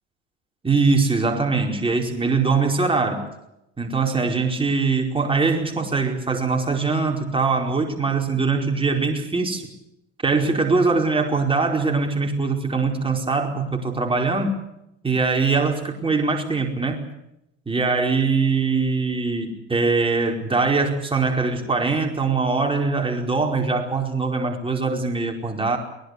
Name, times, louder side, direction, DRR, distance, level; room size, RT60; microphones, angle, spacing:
voice 1, 0.6-3.3 3.8-9.7 10.2-14.6 15.0-17.1 17.7-25.8, right 4 dB, 15° right, 2 dB, 4.8 m, -22 dB
23.0 x 19.5 x 8.3 m, 0.84 s
figure-of-eight pair, 65°, 38 cm